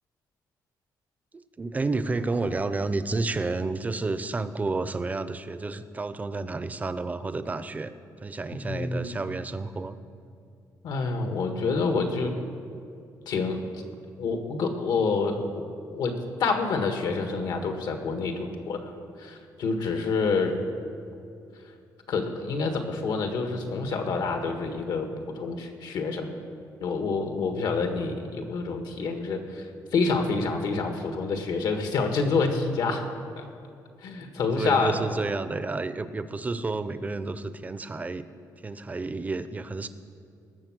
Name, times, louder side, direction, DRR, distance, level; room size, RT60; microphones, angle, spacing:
voice 1, 1.3-7.9 8.2-10.0 34.4-38.2 38.6-39.9, right 3 dB, 20° right, 12 dB, 0.6 m, -30 dB
voice 2, 8.6-9.1 10.8-12.3 13.3-13.6 14.2-15.5 15.9-18.9 19.2-20.6 22.1-26.3 26.8-29.7 29.9-33.1 33.4-33.5 34.0-35.0, left 4 dB, 75° left, 5 dB, 1.6 m, -27 dB
19.0 x 7.3 x 6.1 m, 2.5 s
cardioid pair, 125°, 7 cm